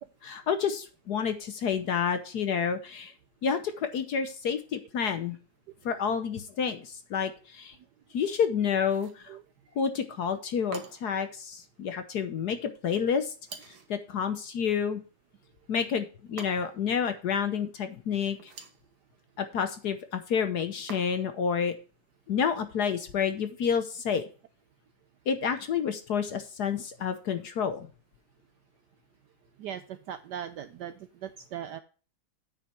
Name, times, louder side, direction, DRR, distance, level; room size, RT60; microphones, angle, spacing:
voice 1, 0.2-3.1 3.4-5.4 5.8-7.8 8.1-9.4 9.8-13.3 13.6-15.0 15.7-18.5 19.4-21.8 22.3-24.3 25.3-27.9, left 7 dB, 60° left, 10 dB, 1.1 m, -29 dB
sound 1, 8.8-9.3 10.7-11.2 13.4-14.0 16.4-16.9 18.3-18.9 20.9-21.4, right 6 dB, 55° right, 1.7 m, -46 dB
voice 2, 29.6-31.8, right 9 dB, 75° right, 11 dB, 1.0 m, -39 dB
8.7 x 6.5 x 4.4 m, 0.37 s
omnidirectional pair, 2.3 m